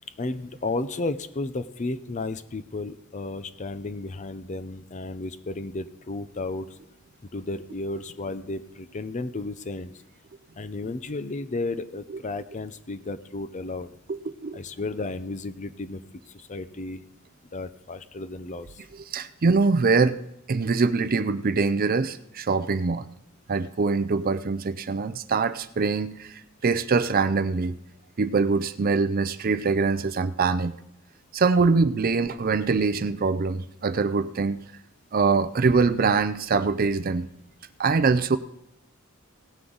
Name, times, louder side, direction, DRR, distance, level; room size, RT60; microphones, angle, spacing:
voice 1, 0.2-6.7 7.3-9.9 10.6-13.9 14.5-17.0 17.5-18.8, left 2 dB, 35° left, 13 dB, 0.6 m, -33 dB
voice 2, 14.1-14.6 19.1-20.2 20.5-23.0 23.5-26.3 26.6-27.7 28.2-30.7 31.3-34.6 35.1-37.3 37.8-38.4, right 4 dB, 45° right, 14 dB, 0.5 m, -23 dB
17.5 x 9.6 x 3.9 m, 0.83 s
head